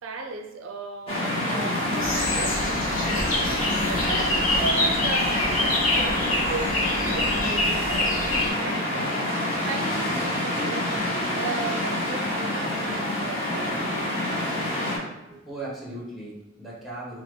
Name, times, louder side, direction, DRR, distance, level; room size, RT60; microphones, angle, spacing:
voice 1, 0.0-3.3 3.9-9.2 9.6-13.7, right 4 dB, 70° right, 3 dB, 0.4 m, -36 dB
sound 1, 1.1-15.0, left 1 dB, 25° left, 0.9 m, -27 dB
sound 2, 2.0-8.5, left 1 dB, 80° left, 0.8 m, -26 dB
sound 3, 3.1-8.5, equal, 45° left, 0.6 m, -41 dB
voice 2, 15.3-17.2, right 2 dB, ahead, -5 dB, 0.8 m, -39 dB
4.7 x 2.1 x 3.1 m, 0.97 s
head